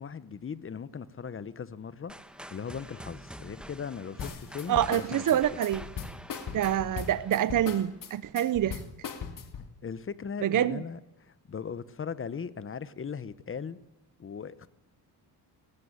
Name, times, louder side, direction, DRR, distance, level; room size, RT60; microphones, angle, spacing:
voice 1, 0.0-2.1 2.5-5.4 8.6-8.7 9.8-13.8 14.2-14.7, left 6 dB, 30° left, 1.2 m, -38 dB
sound 1, 2.1-8.0, equal, ahead, 1.4 m, -47 dB
sound 2, 4.2-9.7, left 6 dB, 50° left, 2.8 m, -39 dB
voice 2, 4.7-5.8 6.5-8.8 10.4-10.8, right 11 dB, 50° right, 0.8 m, -26 dB
26.5 x 18.0 x 10.0 m
cardioid pair, 140°, 40 cm